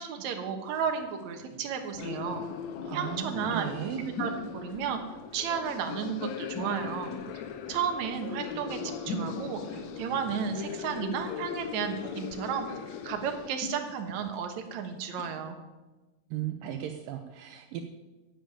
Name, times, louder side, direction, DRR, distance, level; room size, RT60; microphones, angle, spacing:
voice 1, 0.0-2.4 2.9-3.7 4.2-5.0 5.3-7.1 7.7-9.6 10.0-12.7 13.0-15.6, right 7 dB, 60° right, 5 dB, 2.3 m, -33 dB
sound 1, 0.6-15.3, left 2 dB, 35° left, 2.0 m, -44 dB
sound 2, 2.0-13.5, left 8 dB, 90° left, 1.5 m, -39 dB
voice 2, 2.8-4.1 16.3-17.8, right 10 dB, 75° right, 6 dB, 2.3 m, -36 dB
10.5 x 8.9 x 8.9 m, 1.2 s
omnidirectional pair, 4.3 m